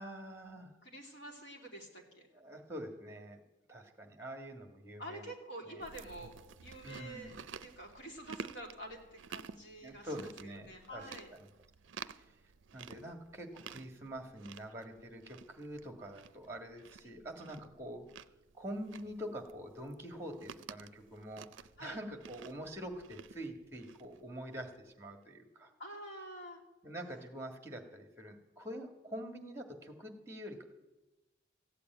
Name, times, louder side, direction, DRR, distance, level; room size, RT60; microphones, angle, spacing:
voice 1, 0.0-0.8 2.3-3.4 3.7-5.3 5.6-5.8 6.8-7.3 9.8-11.5 12.1-12.3 12.7-18.1 18.5-21.5 21.8-25.7 26.8-30.6, equal, 15° right, 5 dB, 1.6 m, -45 dB
voice 2, 0.8-2.3 5.0-7.3 7.6-10.3 10.6-11.3 17.0-17.1 21.8-22.0 25.8-26.6, right 1 dB, 60° left, 1 dB, 2.9 m, -48 dB
Chewing mastication, 5.8-24.7, right 6 dB, 70° right, 0.5 m, -52 dB
15.0 x 8.5 x 9.2 m, 1.1 s
head